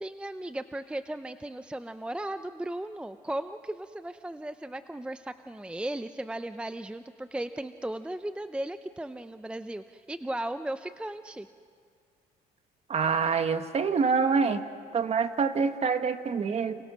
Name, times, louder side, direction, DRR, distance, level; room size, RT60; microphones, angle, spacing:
voice 1, 0.0-11.5, right 1 dB, 5° right, 10 dB, 0.6 m, -36 dB
voice 2, 12.9-14.6 14.9-16.8, right 5 dB, 40° right, 9 dB, 1.5 m, -26 dB
30.0 x 28.0 x 6.3 m, 2.1 s
cardioid pair, 110°, 17 cm